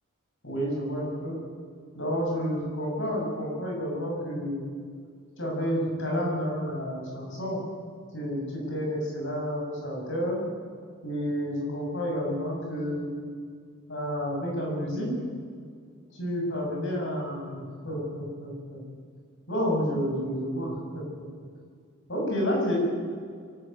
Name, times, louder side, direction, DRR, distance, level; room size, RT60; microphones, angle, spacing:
voice 1, 0.4-1.4 1.9-4.7 5.4-7.6 8.1-10.4 11.0-13.1 13.9-15.1 16.1-18.8 19.5-21.3 22.1-22.8, equal, 55° left, -2 dB, 7.2 m, -30 dB
23.5 x 13.0 x 9.2 m, 2.1 s
head